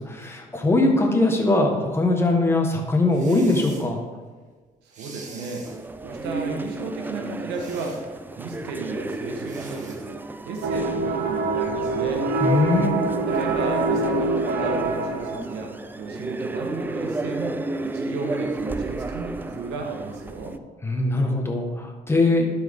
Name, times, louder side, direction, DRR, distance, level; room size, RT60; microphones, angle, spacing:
voice 1, 0.0-4.0 12.4-12.9 20.8-22.5, left 2 dB, 15° left, 2 dB, 1.4 m, -21 dB
sound 1, 3.1-3.9 4.9-5.8 7.5-8.0 9.4-10.0, right 3 dB, 45° right, 1.4 m, -43 dB
voice 2, 4.8-5.7 6.0-8.1 8.4-10.2 10.4-12.3 13.3-20.6, right 3 dB, 90° right, 2 dB, 1.4 m, -33 dB
sound 2, 5.7-20.6, right 2 dB, 10° right, 0.3 m, -32 dB
sound 3, 10.6-15.6, right 3 dB, 65° right, 0.9 m, -25 dB
12.0 x 4.6 x 3.7 m, 1.4 s
cardioid pair, 110°, 17 cm